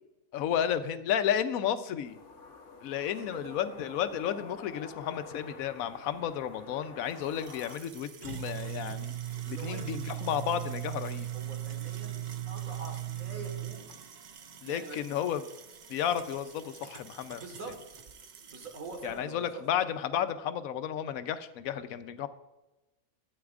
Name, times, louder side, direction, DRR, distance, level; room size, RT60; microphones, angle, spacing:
voice 1, 0.3-2.2 2.8-9.1 9.5-11.3 14.6-15.5 15.9-17.4 19.0-22.3, left 9 dB, 85° left, 11 dB, 1.0 m, -32 dB
sound 1, 2.0-7.8, left 5 dB, 60° left, 1.2 m, -49 dB
voice 2, 3.1-3.6 9.5-9.8 10.1-10.3 11.3-12.2 12.5-13.9 14.6-15.2 17.3-18.0 18.5-19.6, right 3 dB, 75° right, 3 dB, 2.0 m, -44 dB
sound 2, 7.1-19.1, right 12 dB, 60° right, 0.4 m, -40 dB
13.0 x 8.6 x 2.4 m, 1.0 s
omnidirectional pair, 1.4 m